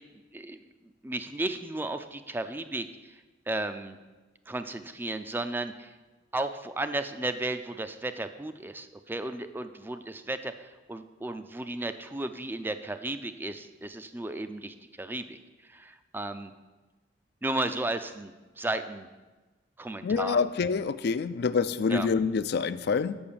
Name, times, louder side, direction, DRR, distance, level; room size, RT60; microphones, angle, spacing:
voice 1, 1.0-2.9 3.5-4.0 4.5-5.9 6.3-10.5 10.9-15.4 15.7-16.5 17.4-19.1 19.8-20.4 21.9-22.1, right 2 dB, 10° right, 10 dB, 0.4 m, -34 dB
voice 2, 20.0-23.2, left 5 dB, 60° left, 14 dB, 0.4 m, -27 dB
7.1 x 6.1 x 6.8 m, 1.2 s
head